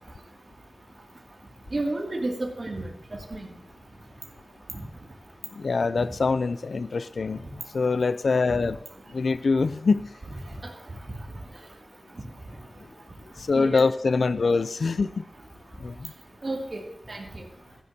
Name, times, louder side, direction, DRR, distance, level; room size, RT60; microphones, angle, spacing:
voice 1, 1.7-2.9 3.3-3.5 4.7-4.8 6.0-6.1 10.6-10.7 13.5-13.8 16.4-17.4, right 2 dB, 50° right, -1 dB, 2.4 m, -31 dB
voice 2, 5.5-7.4 7.7-8.8 9.1-10.0 13.4-15.2 15.8-16.1, left 4 dB, 85° left, 15 dB, 0.3 m, -24 dB
15.5 x 12.0 x 2.8 m, 0.73 s
wide cardioid pair, 80°, 0 cm